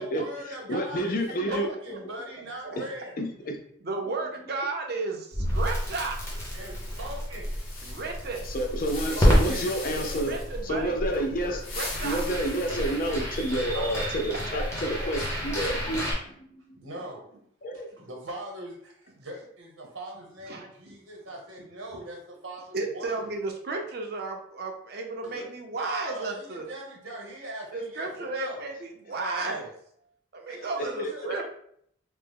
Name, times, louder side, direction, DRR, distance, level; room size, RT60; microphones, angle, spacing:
voice 1, 0.0-1.2 1.5-3.1 6.5-7.5 9.1-9.7 13.7-13.9 14.2-14.3 16.8-17.2 17.7-23.3 25.2-25.4 25.8-28.6 29.1-29.7 30.5-31.3, right 1 dB, 80° right, 0 dB, 1.0 m, -40 dB
voice 2, 0.7-1.7 2.8-2.9 3.2-3.6 8.4-11.6 12.0-16.8 17.6-17.9 25.4-25.5 30.5-31.1, right 1 dB, 45° left, 3 dB, 0.4 m, -30 dB
voice 3, 3.8-6.2 7.8-8.5 10.3-10.9 11.8-12.2 20.5-20.9 22.7-26.6 27.7-29.7 30.3-31.5, right 3 dB, 50° right, 3 dB, 0.5 m, -33 dB
Crackle, 5.3-16.1, equal, 15° left, 0.7 m, -29 dB
sound 1, 6.4-10.6 11.4-13.7, left 3 dB, 90° left, 1.0 m, -41 dB
3.3 x 2.0 x 3.4 m, 0.67 s
head